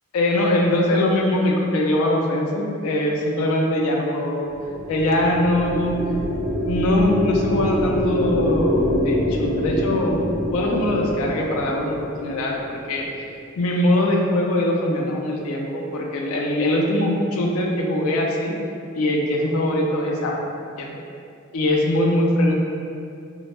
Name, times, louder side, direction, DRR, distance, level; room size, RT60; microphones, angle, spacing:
voice 1, 0.1-4.5 4.9-6.0 6.6-10.2 10.5-12.6 12.9-13.2 13.6-18.5 18.9-20.3 20.8-20.9 21.5-22.5, left 1 dB, 85° left, -1 dB, 0.4 m, -22 dB
sound 1, 4.5-13.0, left 1 dB, 35° left, 1.1 m, -25 dB
2.1 x 2.1 x 3.0 m, 2.5 s
head